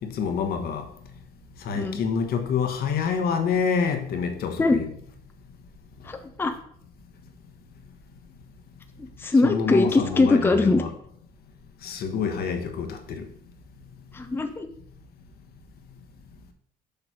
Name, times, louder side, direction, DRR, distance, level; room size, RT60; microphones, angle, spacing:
voice 1, 0.0-0.9 1.6-4.9 9.4-10.9 11.8-13.2, left 6 dB, 65° left, 1.2 m, -27 dB
voice 2, 6.0-6.5 9.0-10.8 14.1-14.7, left 3 dB, 15° left, 0.6 m, -22 dB
6.8 x 3.3 x 6.0 m
cardioid pair, 110°, 17 cm